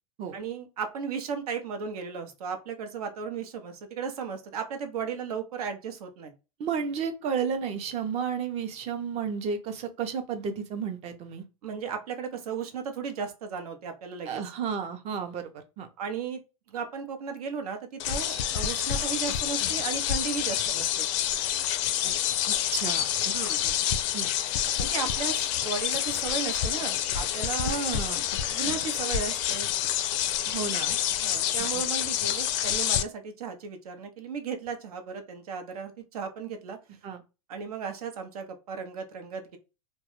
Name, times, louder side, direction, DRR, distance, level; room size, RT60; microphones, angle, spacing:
voice 1, 0.3-6.3 11.6-14.4 16.0-16.4 16.7-21.1 23.3-23.6 24.8-27.8 28.5-29.7 31.2-36.8 37.5-39.6, right 6 dB, 85° right, 0.7 m, -35 dB
voice 2, 6.6-11.4 14.3-15.9 22.0-22.1 22.5-23.3 23.6-23.7 24.1-24.3 27.6-28.3 30.5-31.0 37.0-37.2, right 6 dB, 35° right, 0.5 m, -32 dB
sound 1, 18.0-33.0, left 11 dB, 55° left, 0.4 m, -28 dB
2.2 x 2.1 x 2.9 m
supercardioid pair, 130°, 19 cm